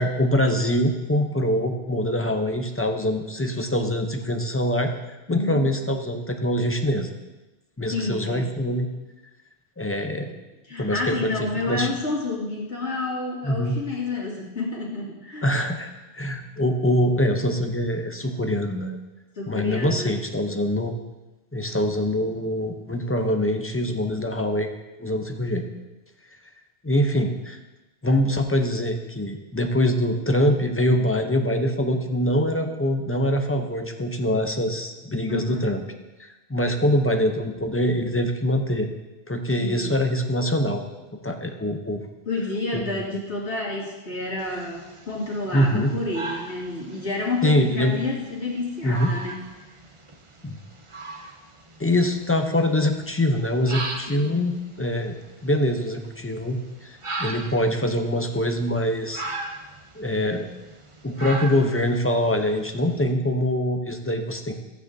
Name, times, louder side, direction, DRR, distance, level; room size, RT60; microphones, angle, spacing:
voice 1, 0.0-4.9 5.3-7.1 7.8-8.9 9.8-10.3 10.8-12.0 13.4-13.8 15.4-15.9 16.1-19.0 19.5-20.9 21.5-24.7 25.0-25.6 26.8-27.6 28.0-35.8 36.2-38.9 39.3-40.8 41.1-42.0 42.7-43.0 45.5-45.9 47.4-48.0 48.8-49.1 50.4-50.6 51.8-55.1 55.4-59.2 60.0-60.5 61.0-64.6, left 1 dB, 15° left, 4 dB, 0.5 m, -24 dB
voice 2, 5.3-5.6 7.9-8.5 10.7-15.6 19.4-20.2 35.3-35.6 39.6-39.9 42.3-49.4 54.1-54.4, left 3 dB, 90° left, -5 dB, 2.4 m, -29 dB
sound 1, 44.4-63.1, right 2 dB, 30° right, 0.7 m, -39 dB
13.5 x 9.0 x 2.7 m, 1.1 s
omnidirectional pair, 1.1 m